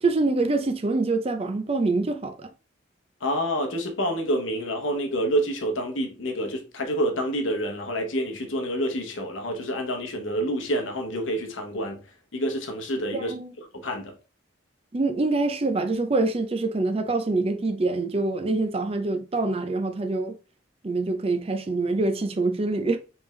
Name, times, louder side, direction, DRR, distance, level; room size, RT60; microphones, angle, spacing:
voice 1, 0.0-2.5 13.1-13.5 14.9-20.3 20.8-23.0, right 3 dB, 30° right, 0.5 m, -25 dB
voice 2, 3.2-12.0 12.3-14.1, equal, 85° left, 1.0 m, -28 dB
3.5 x 3.4 x 3.2 m
head